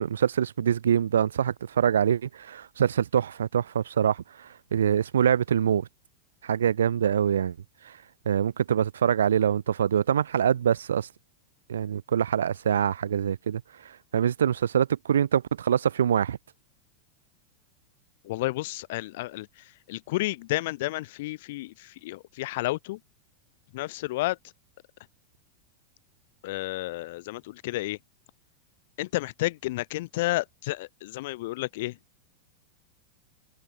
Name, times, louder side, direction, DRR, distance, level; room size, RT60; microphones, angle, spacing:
voice 1, 0.0-5.9 6.4-7.6 7.8-7.9 8.3-11.1 11.7-16.4, right 9 dB, 65° right, 0.5 m, -25 dB
voice 2, 18.3-23.0 23.7-24.4 26.4-28.0 29.0-31.9, left 19 dB, 50° left, 0.3 m, -31 dB
figure-of-eight pair, 90°, 0 cm